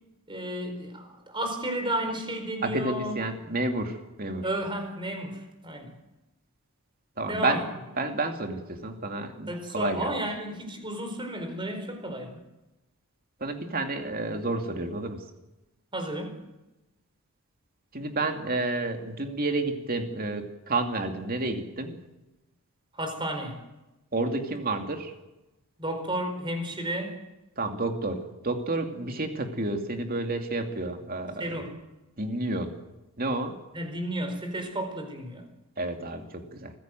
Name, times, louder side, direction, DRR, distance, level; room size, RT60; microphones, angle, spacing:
voice 1, 0.3-3.1 4.4-5.9 7.3-7.6 9.5-12.3 15.9-16.4 22.9-23.6 25.8-27.2 31.4-31.7 33.7-35.5, right 1 dB, 20° right, 6 dB, 4.5 m, -32 dB
voice 2, 2.6-4.4 7.2-7.7 8.0-10.2 13.4-15.2 17.9-21.9 24.1-25.1 27.6-31.6 32.2-32.8 33.2-33.6 35.8-36.7, right 2 dB, 40° right, 5 dB, 2.7 m, -30 dB
24.5 x 15.5 x 7.7 m, 1.0 s
head